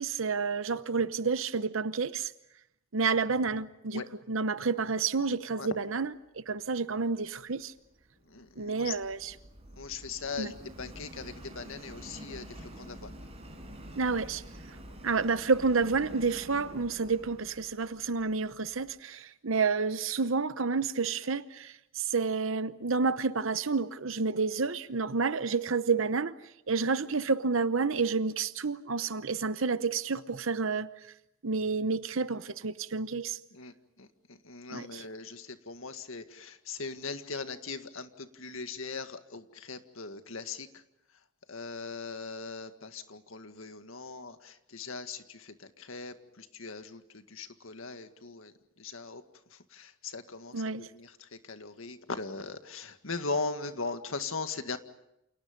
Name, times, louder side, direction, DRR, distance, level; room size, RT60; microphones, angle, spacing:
voice 1, 0.0-2.3 2.9-7.7 8.6-9.3 10.4-10.5 14.0-14.4 15.0-26.3 26.7-30.9 31.4-33.4 34.7-35.0 50.5-50.9, right 4 dB, 70° right, 0.9 m, -30 dB
Subway metro underground, 7.6-18.9, equal, 30° right, 6.2 m, -48 dB
voice 2, 8.3-8.9 9.8-13.1 33.5-34.1 34.4-40.7 41.5-48.5 48.8-49.2 49.7-54.8, left 4 dB, 75° left, 1.9 m, -39 dB
29.0 x 28.5 x 5.3 m
head